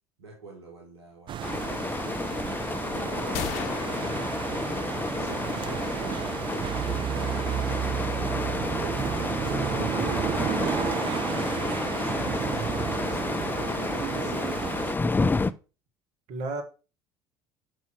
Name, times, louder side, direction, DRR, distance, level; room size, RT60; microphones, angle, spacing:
voice 1, 0.2-1.9 2.6-8.2 8.8-9.7 10.2-14.4, right 2 dB, 85° right, 1.4 m, -48 dB
sound 1, 1.3-15.0, right 10 dB, 40° right, 0.5 m, -32 dB
sound 2, 1.4-15.5, left 3 dB, 15° left, 0.5 m, -30 dB
sound 3, 3.3-5.2, left 10 dB, 65° left, 0.7 m, -38 dB
voice 2, 9.5-10.2 16.3-16.6, right 2 dB, 60° right, 1.9 m, -35 dB
5.9 x 5.6 x 6.0 m
figure-of-eight pair, 65°, 13 cm